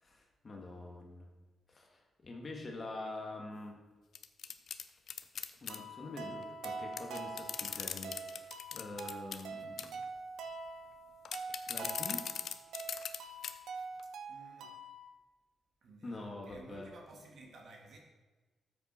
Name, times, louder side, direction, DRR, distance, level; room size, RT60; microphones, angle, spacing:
voice 1, 0.0-1.3 1.7-3.8 5.6-10.0 11.7-12.2 16.0-16.9, left 2 dB, 30° left, 1 dB, 1.8 m, -45 dB
sound 1, 4.1-5.8 6.6-6.7 6.9-9.4 9.8-10.0 11.2-13.2 13.4-13.5 14.0-14.1, left 7 dB, 60° left, 0.6 m, -40 dB
sound 2, 5.7-15.1, right 3 dB, 85° right, 1.1 m, -45 dB
voice 2, 14.0-14.8 15.8-18.0, right 2 dB, 55° right, 0 dB, 2.4 m, -55 dB
13.0 x 7.5 x 4.5 m, 1.3 s
cardioid pair, 135°, 0 cm